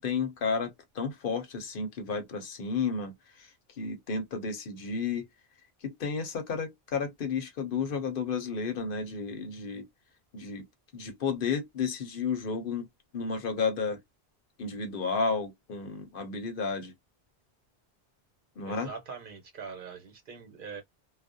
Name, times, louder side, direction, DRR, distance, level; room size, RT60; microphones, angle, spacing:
voice 1, 0.0-3.1 3.4-3.5 3.8-5.3 5.8-9.9 10.3-10.7 10.9-12.9 13.1-14.0 14.6-16.9 18.6-18.9, left 5 dB, 60° left, 0.9 m, -32 dB
voice 2, 18.6-20.8, right 5 dB, 55° right, 1.0 m, -43 dB
2.4 x 2.1 x 2.5 m
omnidirectional pair, 1.0 m